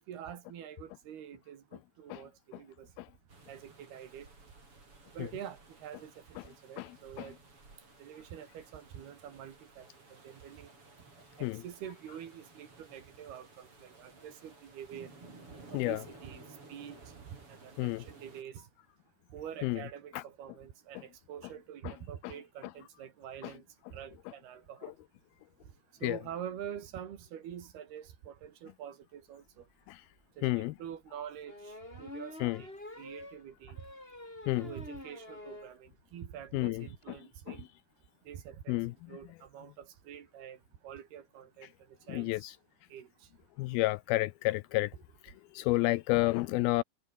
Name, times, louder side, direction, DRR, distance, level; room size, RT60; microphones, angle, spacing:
voice 1, 0.0-2.9 3.5-4.3 5.1-7.4 8.0-10.7 11.4-15.1 15.7-16.4 16.7-17.0 17.5-18.7 19.3-23.6 23.9-24.9 26.0-29.6 30.4-33.8 34.6-37.7 38.3-38.8 39.1-40.6 40.8-41.7 42.1-42.5 42.9-43.3, right 9 dB, 90° right, 4.6 m, -46 dB
sound 1, 3.3-18.4, right 3 dB, 35° right, 7.1 m, -56 dB
sound 2, 29.7-29.8 30.2-30.3 31.5-35.8 36.1-36.2 36.5-36.6 36.8-37.0, left 1 dB, 15° left, 5.9 m, -47 dB
voice 2, 30.4-30.7 32.4-32.6 34.5-34.7 36.5-37.2 37.5-37.6 38.7-38.9 42.1-42.6 43.6-44.9 45.2-46.8, left 20 dB, 80° left, 2.5 m, -31 dB
omnidirectional pair, 4.4 m